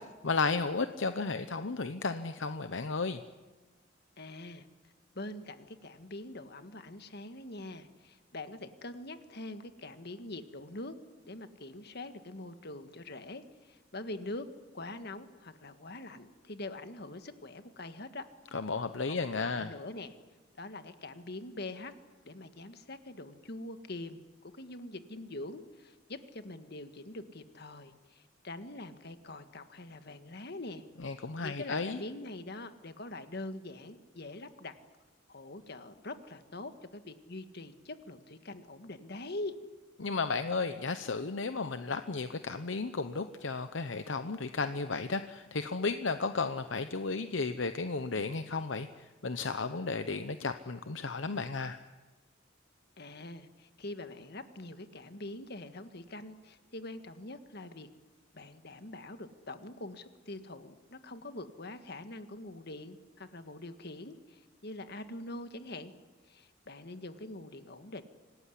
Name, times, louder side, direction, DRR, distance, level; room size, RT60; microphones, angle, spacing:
voice 1, 0.2-3.2 18.5-19.7 31.0-32.0 40.0-51.8, left 4 dB, 70° left, 10 dB, 0.9 m, -33 dB
voice 2, 4.2-4.7 5.1-11.0 11.3-14.5 14.7-18.2 19.1-20.1 20.6-21.9 22.2-30.8 31.1-34.7 35.3-39.6 53.0-57.9 58.3-65.9 66.3-68.0, left 2 dB, 55° left, 9 dB, 1.7 m, -44 dB
26.0 x 18.5 x 10.0 m, 1.3 s
head